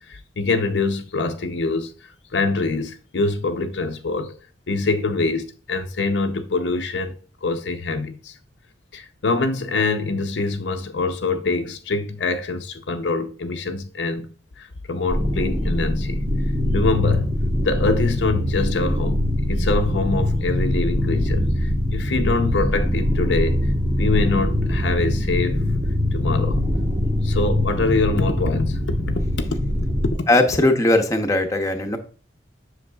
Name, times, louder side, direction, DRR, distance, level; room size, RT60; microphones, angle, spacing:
voice 1, 0.1-1.9 2.3-4.4 4.7-7.2 7.4-8.3 8.9-16.2 16.7-17.3 17.6-23.6 24.0-25.6 26.1-26.6 27.2-29.6 30.0-30.3, left 3 dB, 80° left, 0.7 m, -24 dB
sound 1, 15.1-30.1, left 1 dB, 40° right, 1.3 m, -22 dB
voice 2, 30.3-32.0, left 1 dB, 20° left, 0.7 m, -19 dB
7.7 x 6.2 x 2.3 m
head